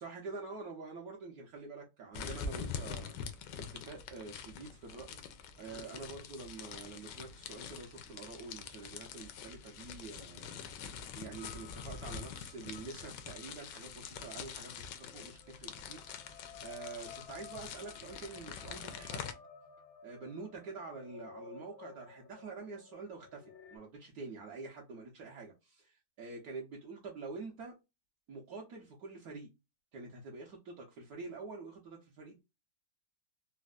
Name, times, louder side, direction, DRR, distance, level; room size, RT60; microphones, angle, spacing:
voice 1, 0.0-3.1 3.6-5.2 5.6-19.2 20.0-27.7 28.3-29.5 29.9-32.4, right 4 dB, 65° right, 1.1 m, -47 dB
sound 1, 2.1-19.3, left 6 dB, 75° left, 1.2 m, -45 dB
sound 2, 11.3-23.8, left 6 dB, 55° left, 0.8 m, -55 dB
4.1 x 2.0 x 2.3 m
omnidirectional pair, 2.0 m